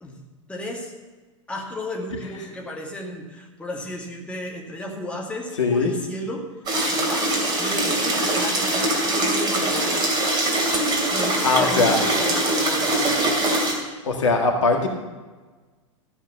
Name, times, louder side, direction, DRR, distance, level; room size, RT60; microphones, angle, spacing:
voice 1, 0.5-0.9 1.5-6.5 6.9-10.1 11.1-13.4, equal, 5° left, -1 dB, 2.1 m, -33 dB
voice 2, 5.6-5.9 11.4-12.0 14.0-14.9, left 3 dB, 65° left, 2 dB, 1.9 m, -20 dB
sound 1, 6.7-13.7, right 1 dB, 25° right, 2.9 m, -22 dB
14.0 x 7.3 x 6.9 m, 1.3 s
figure-of-eight pair, 95°, 17 cm